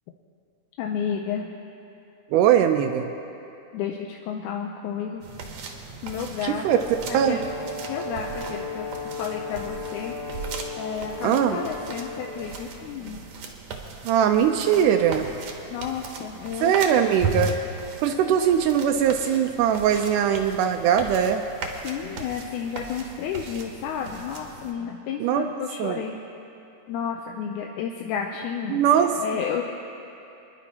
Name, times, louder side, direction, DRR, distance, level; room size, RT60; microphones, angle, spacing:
voice 1, 0.8-1.5 3.7-5.2 6.0-6.7 7.1-7.4 7.9-8.9 9.2-10.2 10.8-13.3 14.7-15.0 15.7-16.7 18.3-18.4 21.8-26.2 26.9-28.9 29.2-29.6, left 7 dB, 80° left, 1 dB, 2.1 m, -31 dB
voice 2, 2.3-3.1 6.4-6.8 7.1-7.4 11.2-11.6 14.1-15.3 16.6-17.5 18.0-21.4 25.2-25.4 25.8-26.0 28.7-29.1, right 9 dB, 80° right, 5 dB, 2.0 m, -21 dB
sound 1, 5.2-24.7, right 3 dB, 65° right, 2.0 m, -37 dB
Brass instrument, 6.6-12.6, left 3 dB, 35° right, 1.7 m, -35 dB
26.0 x 11.0 x 2.8 m, 2.8 s
omnidirectional pair, 3.7 m